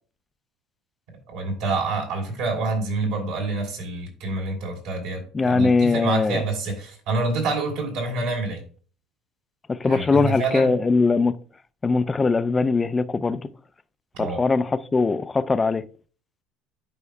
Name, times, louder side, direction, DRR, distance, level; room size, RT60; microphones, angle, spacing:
voice 1, 1.3-8.6 9.8-10.7 14.1-14.4, right 3 dB, 80° right, 3.1 m, -27 dB
voice 2, 5.3-6.4 9.7-11.4 11.8-13.4 14.2-15.8, left 4 dB, 20° left, 0.4 m, -21 dB
11.5 x 4.7 x 2.2 m
cardioid pair, 110°, 0 cm